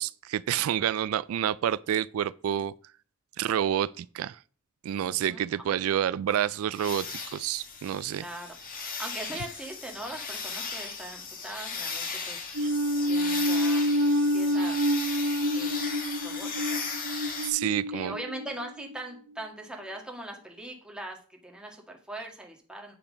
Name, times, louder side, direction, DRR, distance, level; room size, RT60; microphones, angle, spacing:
voice 1, 0.0-2.7 3.4-4.4 4.8-8.2 12.6-12.7 17.4-18.1, right 10 dB, 85° right, 0.3 m, -28 dB
voice 2, 5.0-5.5 8.1-8.5 9.0-12.8 13.1-13.9 14.3-14.9 15.5-15.9 16.2-16.9 17.9-22.9, right 1 dB, 5° right, 1.7 m, -41 dB
sound 1, 6.7-17.5, left 5 dB, 40° left, 1.6 m, -37 dB
sound 2, 12.6-19.0, equal, 65° right, 0.7 m, -27 dB
8.5 x 5.8 x 5.2 m
head